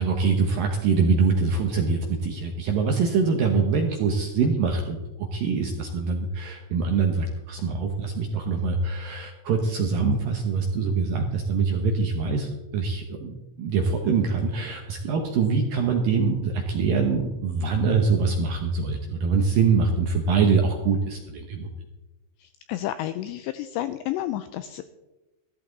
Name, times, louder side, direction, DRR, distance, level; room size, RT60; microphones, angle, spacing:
voice 1, 0.0-21.7, right 5 dB, 70° right, 3 dB, 2.2 m, -24 dB
voice 2, 22.4-24.8, left 13 dB, 85° left, 11 dB, 2.5 m, -31 dB
14.0 x 14.0 x 4.0 m, 1.1 s
omnidirectional pair, 5.6 m